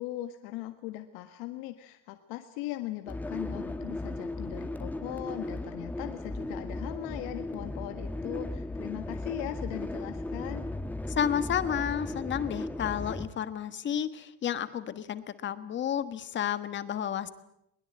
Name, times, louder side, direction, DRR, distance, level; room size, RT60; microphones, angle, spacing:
voice 1, 0.0-10.6, left 15 dB, 70° left, 7 dB, 1.6 m, -39 dB
sound 1, 3.1-13.3, left 2 dB, 5° left, 1.1 m, -36 dB
voice 2, 11.2-17.3, left 9 dB, 30° left, 12 dB, 1.4 m, -31 dB
22.0 x 21.0 x 8.8 m, 0.80 s
cardioid pair, 165°, 37 cm